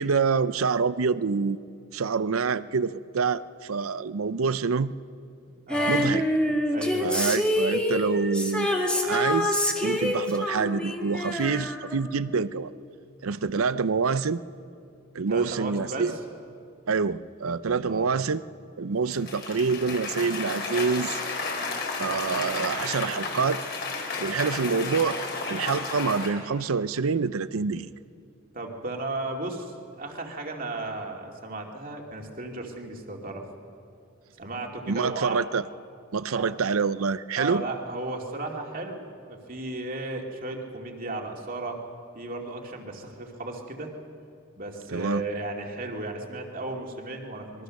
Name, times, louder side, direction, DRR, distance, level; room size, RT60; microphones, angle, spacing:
voice 1, 0.0-1.6 1.9-4.9 5.9-6.2 7.0-12.7 13.2-14.4 15.1-16.1 16.9-18.4 18.8-21.2 22.0-23.6 24.2-25.2 25.5-27.9 34.9-35.7 36.1-37.7 44.9-45.2, right 5 dB, 90° right, 15 dB, 0.6 m, -26 dB
Female singing, 5.7-12.3 12.6-12.7, left 1 dB, 5° left, 1.9 m, -26 dB
voice 2, 5.7-6.1 6.7-7.3 15.3-16.2 17.8-18.1 28.5-33.5 34.4-35.4 36.3-36.5 37.4-41.8 42.1-43.9 44.6-47.6, right 2 dB, 40° right, 1 dB, 2.6 m, -35 dB
Cheering / Applause, 19.1-26.3, left 3 dB, 50° left, 4.3 m, -32 dB
26.0 x 22.5 x 6.5 m, 2.4 s
head